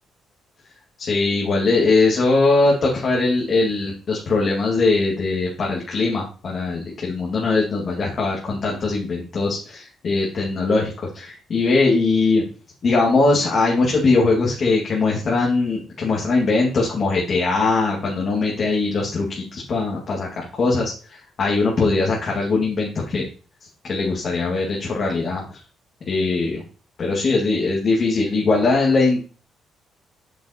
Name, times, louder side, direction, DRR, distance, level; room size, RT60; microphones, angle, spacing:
voice 1, 1.0-12.4 12.8-23.2 23.9-25.4 26.1-26.6 27.0-29.2, left 3 dB, 50° left, -3 dB, 2.0 m, -21 dB
8.1 x 6.1 x 2.9 m, 0.38 s
cardioid pair, 90°, 0 cm